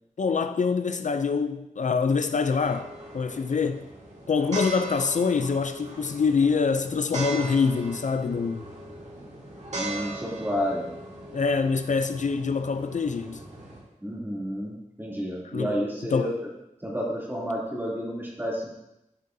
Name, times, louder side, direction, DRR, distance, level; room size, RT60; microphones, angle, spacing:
voice 1, 0.2-2.9 3.1-3.9 4.3-8.7 11.3-13.4 15.4-15.8 16.1-16.4, left 5 dB, 65° left, 0.4 m, -25 dB
sound 1, 2.6-13.8, right 2 dB, 60° right, 1.9 m, -39 dB
voice 2, 9.7-10.9 14.0-16.3 16.8-18.7, equal, 15° right, 2.7 m, -30 dB
12.0 x 6.5 x 2.7 m
wide cardioid pair, 85°, 13 cm